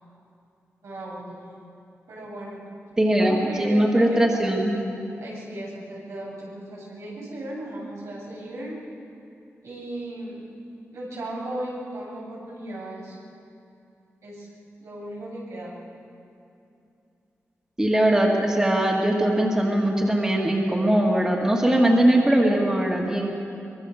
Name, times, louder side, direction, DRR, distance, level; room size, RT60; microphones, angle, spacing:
voice 1, 0.8-1.4 2.1-2.6 3.2-4.2 5.2-8.8 9.6-10.4 10.9-13.2 14.2-14.5 14.8-15.7, right 1 dB, 85° right, -4 dB, 7.6 m, -36 dB
voice 2, 3.0-4.8 17.8-23.3, right 1 dB, 15° right, -1 dB, 2.1 m, -20 dB
23.5 x 22.5 x 6.6 m, 2.7 s
wide cardioid pair, 170°, 5 cm